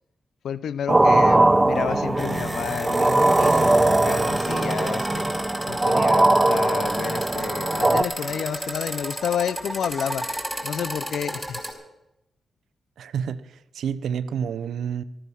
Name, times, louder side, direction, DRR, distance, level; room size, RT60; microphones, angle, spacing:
voice 1, 0.4-5.3 5.7-10.3 10.6-11.6, left 8 dB, 80° left, 0.5 m, -30 dB
sound 1, 0.9-8.0, right 2 dB, 25° right, 0.7 m, -20 dB
sound 2, 1.8-11.7, equal, ahead, 4.9 m, -33 dB
voice 2, 13.0-15.0, right 7 dB, 85° right, 0.6 m, -29 dB
14.0 x 13.5 x 6.3 m
cardioid pair, 60°, 0 cm